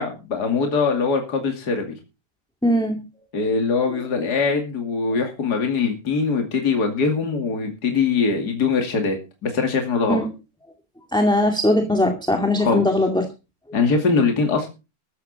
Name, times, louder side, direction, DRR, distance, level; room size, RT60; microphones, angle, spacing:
voice 1, 0.0-2.0 3.3-9.2 9.4-10.2 12.6-12.8 13.7-14.7, left 4 dB, 50° left, 4 dB, 2.9 m, -22 dB
voice 2, 2.6-3.0 10.1-10.3 11.1-13.3, left 1 dB, ahead, 3 dB, 2.1 m, -20 dB
14.0 x 12.0 x 4.2 m, 0.29 s
omnidirectional pair, 2.3 m